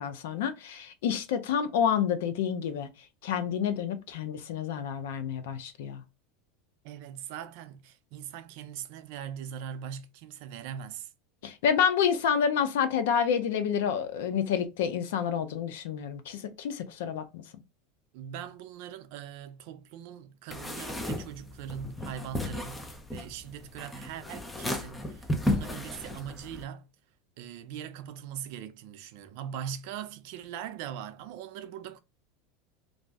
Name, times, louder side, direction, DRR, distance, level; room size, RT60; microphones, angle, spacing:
voice 1, 0.0-2.9 3.2-6.0 11.4-17.4, left 8 dB, 80° left, 0.5 m, -29 dB
voice 2, 6.8-11.1 18.1-26.9 27.4-32.0, right 9 dB, 65° right, 0.4 m, -41 dB
sound 1, 20.5-26.6, left 1 dB, 10° left, 0.4 m, -34 dB
2.5 x 2.0 x 3.4 m
supercardioid pair, 140°, 0 cm